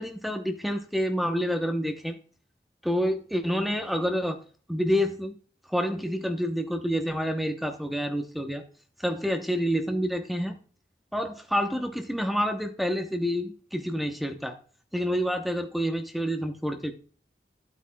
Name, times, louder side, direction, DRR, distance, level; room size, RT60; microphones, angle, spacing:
voice 1, 0.0-2.2 2.8-4.4 4.7-5.4 5.7-8.6 9.0-10.6 11.1-14.6 14.9-16.9, equal, ahead, 5 dB, 0.8 m, -28 dB
11.5 x 8.5 x 2.2 m, 0.38 s
head